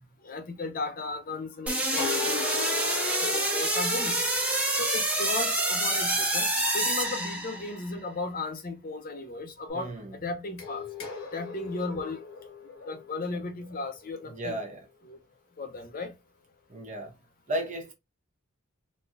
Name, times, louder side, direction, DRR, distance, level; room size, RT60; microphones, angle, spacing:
voice 1, 0.2-4.2 4.8-9.9 10.2-10.8 11.3-12.2 12.9-14.6 15.0-15.2 15.6-16.1, left 3 dB, 45° left, 0.7 m, -35 dB
sound 1, 1.7-7.9, right 1 dB, 5° right, 0.8 m, -27 dB
sound 2, 2.0-4.7 10.6-14.6, left 6 dB, 90° left, 1.0 m, -38 dB
voice 2, 9.7-10.2 14.3-14.8 16.7-17.1 17.5-17.9, right 1 dB, 35° right, 1.0 m, -34 dB
4.2 x 2.3 x 2.5 m
head